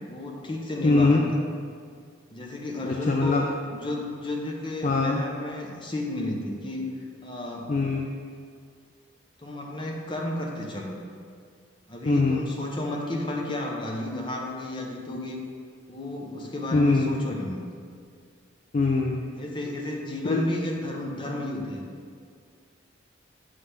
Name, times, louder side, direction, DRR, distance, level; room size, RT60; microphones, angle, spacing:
voice 1, 0.1-1.3 2.3-3.4 3.7-6.9 7.2-7.8 9.4-11.0 11.9-15.4 15.9-17.7 19.4-21.8, left 1 dB, 25° left, 0 dB, 0.8 m, -32 dB
voice 2, 0.8-1.2 2.8-3.4 4.8-5.2 7.7-8.1 12.1-12.4 16.7-17.1 18.7-19.2 20.2-20.4, left 3 dB, 40° left, 1 dB, 0.3 m, -22 dB
7.3 x 3.3 x 5.7 m, 2.1 s
head